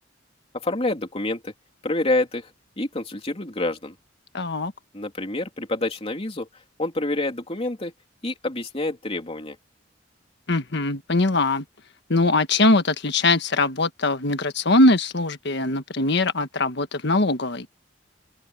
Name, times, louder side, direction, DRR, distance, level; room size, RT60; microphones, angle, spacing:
voice 1, 0.5-1.5 1.8-2.5 2.8-4.0 4.9-7.9 8.2-9.6, left 2 dB, 35° left, 3.2 m, -27 dB
voice 2, 4.3-4.7 10.5-11.6 12.1-17.7, left 2 dB, 65° left, 1.5 m, -21 dB
open air
head